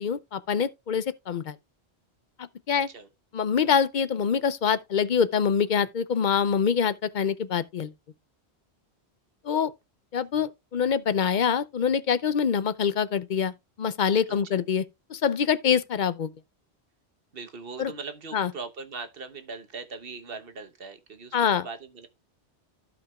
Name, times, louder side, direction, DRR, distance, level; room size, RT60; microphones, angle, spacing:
voice 1, 0.0-1.5 2.7-2.9 3.3-7.9 9.4-9.7 10.1-13.5 13.8-14.8 15.1-16.3 17.8-17.9 18.3-18.5 21.3-21.6, left 7 dB, 50° left, 0.7 m, -25 dB
voice 2, 2.7-3.1 14.5-14.6 17.3-22.1, right 4 dB, 60° right, 1.2 m, -40 dB
15.5 x 5.3 x 2.3 m
omnidirectional pair, 1.1 m